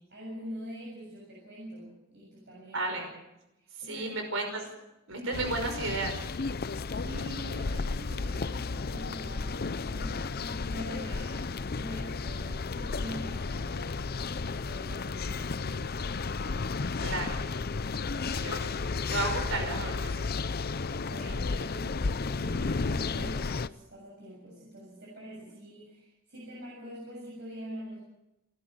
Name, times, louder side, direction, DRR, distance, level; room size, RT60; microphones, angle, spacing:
voice 1, 0.1-2.8 3.6-4.2 7.0-16.0 21.0-28.0, equal, 55° right, -3 dB, 7.2 m, -44 dB
voice 2, 2.7-3.1 3.8-4.7 5.1-6.2 17.0-17.4 18.1-18.8 19.1-20.3, right 2 dB, 70° right, 4 dB, 5.2 m, -33 dB
sound 1, 5.3-23.7, left 4 dB, 45° left, 0.6 m, -33 dB
28.0 x 12.0 x 7.7 m, 0.93 s
head